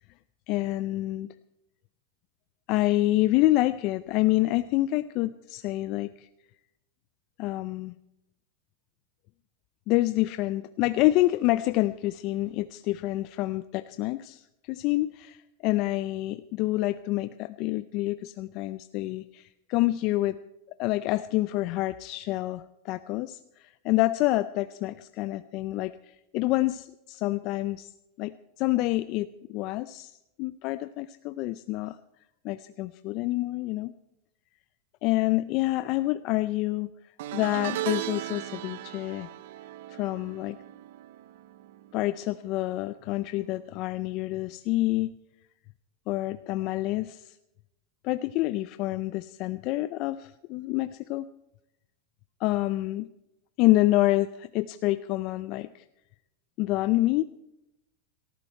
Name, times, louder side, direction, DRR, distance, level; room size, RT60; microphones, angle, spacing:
voice 1, 0.5-1.3 2.7-6.3 7.4-7.9 9.9-20.4 20.8-27.9 28.2-30.1 30.4-32.0 32.4-33.9 35.0-36.9 37.3-39.3 39.9-40.6 41.9-45.1 46.1-47.4 48.0-51.2 52.4-53.1 53.6-55.8 56.6-57.2, left 17 dB, 50° left, 13 dB, 0.5 m, -27 dB
sound 1, 37.2-42.6 42.8-43.2 44.5-44.6, right 14 dB, 75° right, 0.6 m, -37 dB
17.5 x 14.0 x 4.5 m, 0.88 s
supercardioid pair, 120°, 0 cm